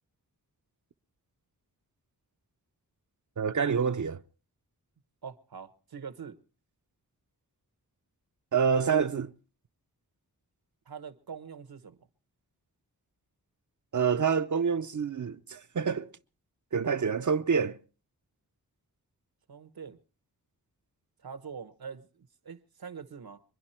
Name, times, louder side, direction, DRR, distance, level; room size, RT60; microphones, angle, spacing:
voice 1, 3.4-4.2 8.5-9.3 13.9-16.1 16.7-17.8, right 6 dB, 50° right, 0.8 m, -27 dB
voice 2, 5.2-6.4 10.8-12.1 19.5-20.0 21.2-23.4, right 6 dB, 75° right, 1.2 m, -44 dB
24.5 x 10.5 x 4.4 m
cardioid pair, 50°, 37 cm